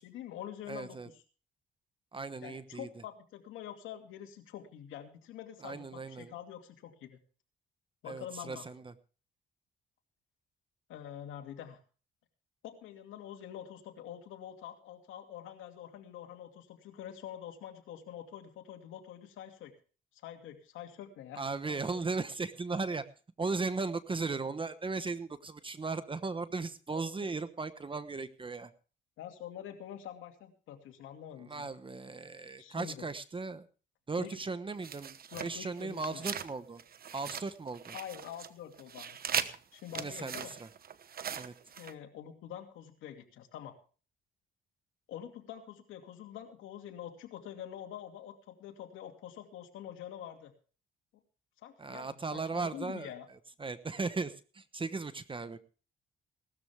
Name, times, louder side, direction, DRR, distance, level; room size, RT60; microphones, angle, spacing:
voice 1, 0.0-1.2 2.4-7.2 8.0-8.7 10.9-11.8 12.6-19.7 20.1-22.1 26.9-27.3 29.2-31.7 32.6-33.1 34.2-34.4 35.3-36.3 37.9-39.2 39.7-40.6 41.8-43.8 45.1-50.5 51.6-53.3, left 10 dB, 90° left, 4 dB, 2.5 m, -46 dB
voice 2, 0.7-1.1 2.1-2.9 5.6-6.3 8.0-8.9 21.4-23.0 23.4-28.7 31.5-33.7 34.1-35.2 35.4-36.8 37.1-37.9 39.9-40.5 41.3-41.5 51.8-53.1 53.6-55.6, right 4 dB, 25° right, 12 dB, 1.1 m, -37 dB
sound 1, 34.8-36.5 36.8-38.5 38.7-41.9, right 8 dB, 50° right, 1.1 m, -39 dB
18.0 x 13.5 x 3.5 m, 0.38 s
cardioid pair, 90°, 20 cm